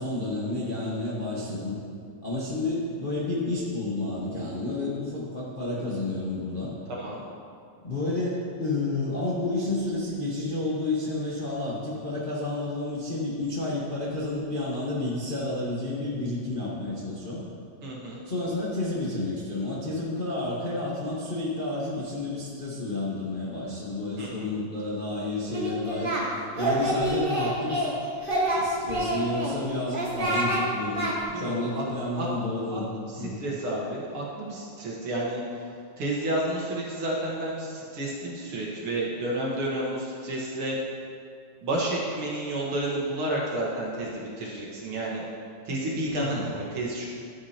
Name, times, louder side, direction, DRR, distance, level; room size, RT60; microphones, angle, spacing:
voice 1, 0.0-1.8 2.2-6.7 7.8-17.4 18.2-26.1 26.5-27.9 28.5-32.9 33.2-33.3 46.1-46.5, left 2 dB, 70° left, -7 dB, 0.4 m, -30 dB
voice 2, 17.8-18.2 24.2-24.3 31.3-31.8 32.1-32.3 32.7-32.8 33.1-35.4 36.0-40.8 41.6-45.2 45.7-47.1, right 1 dB, 55° right, -4 dB, 2.0 m, -31 dB
Singing, 25.5-26.2 26.5-27.9 28.2-29.5 29.9-30.6 30.9-31.1, right 1 dB, 30° right, 1.1 m, -27 dB
12.5 x 8.5 x 2.9 m, 2.3 s
omnidirectional pair, 3.4 m